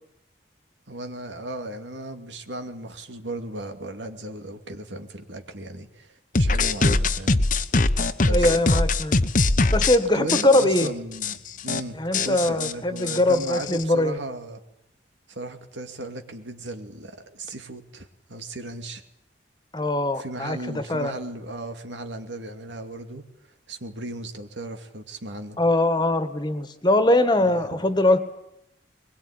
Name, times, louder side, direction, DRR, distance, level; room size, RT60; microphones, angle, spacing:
voice 1, 0.9-7.4 8.2-8.6 10.1-14.6 15.3-19.0 20.1-23.3 23.7-25.6 27.4-27.9, right 1 dB, 85° right, 6 dB, 2.6 m, -36 dB
sound 1, 6.4-10.0 10.3-10.9 11.2-11.3 11.6-11.8 12.1-13.8, left 3 dB, 45° left, 1.1 m, -22 dB
voice 2, 8.3-9.2 9.7-10.9 12.0-14.2 19.7-21.1 25.6-28.2, left 1 dB, 25° left, 10 dB, 1.8 m, -22 dB
22.5 x 21.5 x 10.0 m, 0.79 s
head